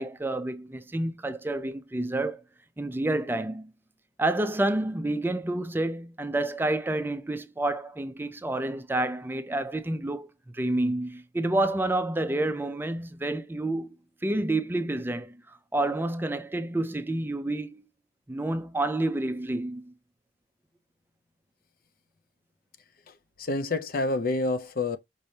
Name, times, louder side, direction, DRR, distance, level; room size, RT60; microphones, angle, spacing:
voice 1, 0.0-2.4 2.8-3.7 4.2-13.9 14.2-15.4 15.7-17.9 18.3-19.9, right 2 dB, 10° right, 0.4 m, -29 dB
voice 2, 23.1-25.0, left 2 dB, 55° left, 0.6 m, -28 dB
5.3 x 3.2 x 2.7 m
head